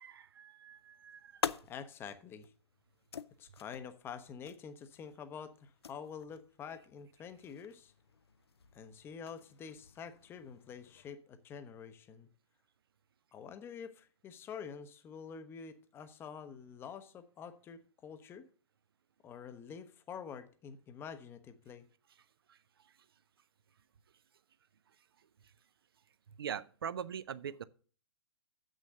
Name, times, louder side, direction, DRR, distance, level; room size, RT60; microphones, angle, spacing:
voice 1, 0.0-1.4 22.5-22.9 25.2-25.3 26.4-27.6, right 8 dB, 55° right, 0.6 m, -43 dB
sound 1, 0.7-11.1, left 7 dB, 65° left, 0.5 m, -47 dB
voice 2, 1.7-2.5 3.4-7.9 8.7-12.3 13.3-18.5 19.2-21.8, left 7 dB, 15° left, 0.8 m, -47 dB
7.5 x 6.3 x 6.5 m
figure-of-eight pair, 115°, 15 cm